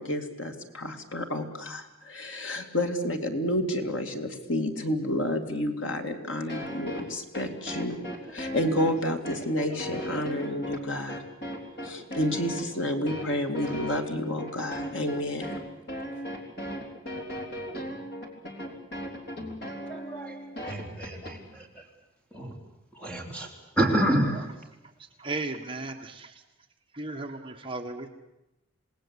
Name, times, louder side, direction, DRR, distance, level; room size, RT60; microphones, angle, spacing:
voice 1, 0.0-8.0 8.3-11.2 11.8-15.6, left 1 dB, 75° left, 4 dB, 2.8 m, -30 dB
sound 1, 6.5-21.3, equal, 50° left, 3.9 m, -37 dB
voice 2, 19.9-21.8 22.3-22.5 23.0-23.5 23.8-24.5, right 1 dB, 5° left, 2 dB, 3.7 m, -28 dB
voice 3, 25.2-26.3 26.9-28.1, right 2 dB, 25° right, 3 dB, 1.6 m, -35 dB
27.5 x 19.0 x 8.3 m, 0.92 s
head